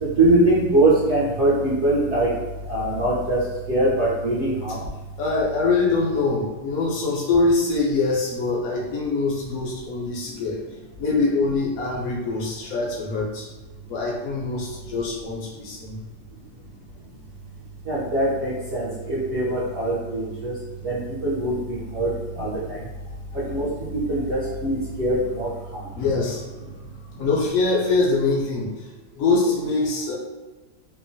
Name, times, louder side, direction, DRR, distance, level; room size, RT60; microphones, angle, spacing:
voice 1, 0.0-2.3 2.6-4.8 17.8-22.9 23.3-25.9, right 1 dB, 55° right, -8 dB, 0.8 m, -23 dB
voice 2, 5.2-13.5 13.9-16.0 22.4-22.5 24.4-24.5 25.9-30.2, left 3 dB, 70° left, -2 dB, 0.8 m, -24 dB
2.8 x 2.2 x 2.6 m, 1.2 s
omnidirectional pair, 1.9 m